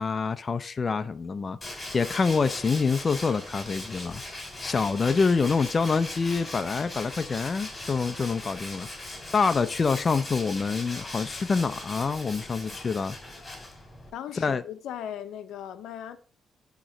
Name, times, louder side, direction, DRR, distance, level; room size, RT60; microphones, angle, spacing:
voice 1, 0.0-4.2 4.6-13.2 14.4-14.6, left 5 dB, 35° left, 0.4 m, -26 dB
Tools, 1.6-14.1, left 1 dB, 15° left, 2.1 m, -39 dB
voice 2, 14.1-16.2, left 10 dB, 85° left, 0.6 m, -38 dB
8.7 x 3.0 x 5.3 m
cardioid pair, 115°, 0 cm